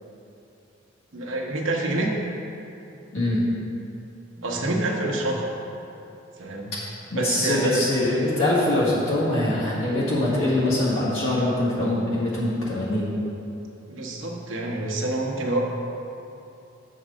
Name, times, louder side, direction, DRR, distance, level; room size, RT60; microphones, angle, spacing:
voice 1, 1.1-2.1 4.4-5.5 6.4-6.7 7.2-7.8 13.9-15.6, right 2 dB, 75° right, -1 dB, 1.0 m, -27 dB
voice 2, 3.1-3.4 7.1-13.1, left 1 dB, 80° left, -8 dB, 1.7 m, -23 dB
6.5 x 4.7 x 6.1 m, 2.8 s
head